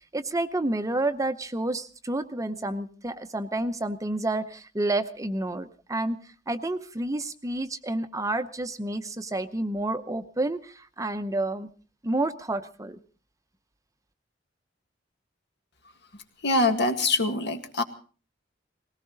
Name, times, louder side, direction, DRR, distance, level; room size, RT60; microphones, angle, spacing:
voice 1, 0.0-11.7 12.0-13.0, right 2 dB, 20° right, 10 dB, 0.8 m, -30 dB
voice 2, 16.4-17.8, left 2 dB, 65° left, 6 dB, 2.0 m, -24 dB
20.0 x 18.0 x 4.0 m, 0.39 s
head